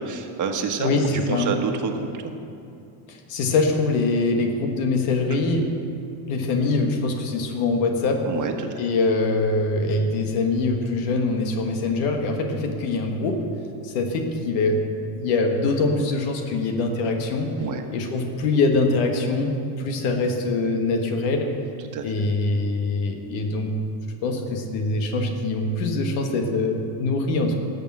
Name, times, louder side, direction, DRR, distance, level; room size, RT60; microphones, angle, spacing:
voice 1, 0.0-2.3 8.3-8.7 17.6-17.8 21.9-22.1, right 5 dB, 40° right, 4 dB, 1.4 m, -28 dB
voice 2, 0.8-1.6 3.1-5.7 6.3-8.3 8.8-13.4 13.8-14.8 15.1-17.5 17.9-21.5 22.0-23.8 24.2-27.5, left 3 dB, 75° left, 3 dB, 1.6 m, -23 dB
13.0 x 6.8 x 7.6 m, 2.6 s
cardioid pair, 120°, 48 cm